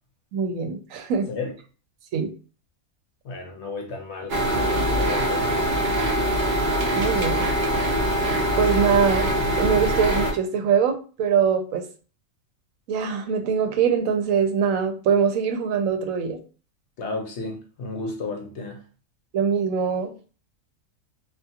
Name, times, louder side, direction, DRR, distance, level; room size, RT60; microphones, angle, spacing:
voice 1, 0.3-1.3 2.1-2.3 6.9-7.5 8.6-9.3 9.6-11.8 12.9-16.4 19.3-20.1, right 6 dB, 80° right, 1.0 m, -23 dB
voice 2, 3.2-5.7 17.0-18.8, left 3 dB, 65° left, 0.8 m, -33 dB
sound 1, 4.3-10.3, right 1 dB, 55° right, 0.6 m, -23 dB
2.5 x 2.3 x 2.7 m
omnidirectional pair, 1.4 m